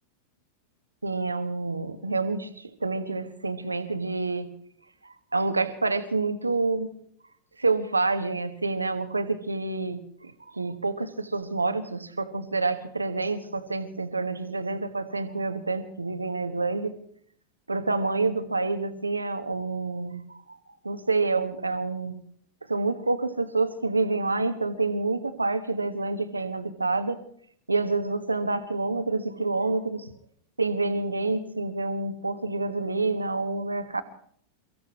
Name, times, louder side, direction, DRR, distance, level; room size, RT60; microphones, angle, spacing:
voice 1, 1.0-4.5 5.0-6.9 7.6-16.9 17.7-22.2 22.7-27.2 27.7-30.1 30.6-34.0, right 3 dB, 80° right, 8 dB, 1.3 m, -28 dB
29.0 x 15.5 x 3.1 m, 0.63 s
figure-of-eight pair, 90°, 0 cm